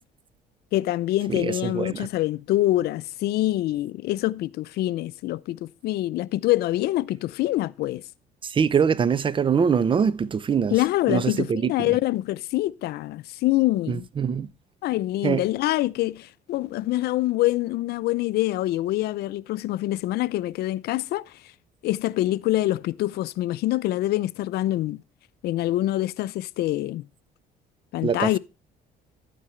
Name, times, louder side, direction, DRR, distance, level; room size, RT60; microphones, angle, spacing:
voice 1, 0.7-8.0 10.7-14.1 14.8-21.2 21.8-25.0 25.4-27.1 27.9-28.4, left 16 dB, 75° left, 0.5 m, -25 dB
voice 2, 1.3-2.1 8.4-10.8 11.1-11.9 13.9-14.5 15.2-15.4 28.0-28.4, right 6 dB, 30° right, 0.5 m, -23 dB
11.0 x 9.4 x 3.1 m
cardioid pair, 110°, 17 cm